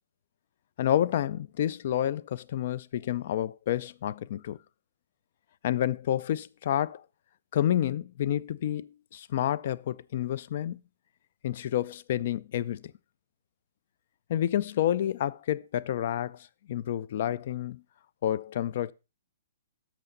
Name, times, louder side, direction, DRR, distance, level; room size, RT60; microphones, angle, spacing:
voice 1, 0.8-4.6 5.6-7.0 7.5-10.8 11.4-12.9 14.3-17.8 18.2-18.9, left 11 dB, 45° left, 0.4 m, -29 dB
11.0 x 6.8 x 3.9 m
hypercardioid pair, 165°, 0 cm